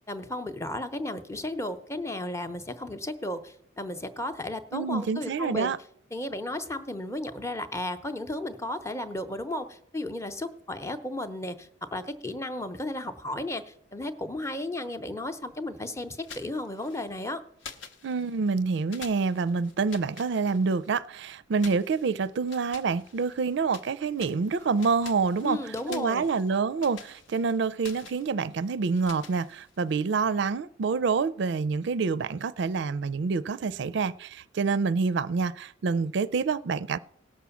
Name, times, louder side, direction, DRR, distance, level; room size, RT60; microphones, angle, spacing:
voice 1, 0.1-5.7 6.1-17.4 25.4-26.3, left 1 dB, 15° left, 9 dB, 0.7 m, -34 dB
voice 2, 4.7-5.8 18.0-37.0, right 5 dB, 60° right, 18 dB, 0.4 m, -27 dB
sound 1, 16.1-17.2 17.6-18.6 18.9-21.0 21.6-23.9 24.2-30.0, left 5 dB, 70° left, 0.9 m, -48 dB
17.5 x 6.1 x 7.0 m, 0.73 s
head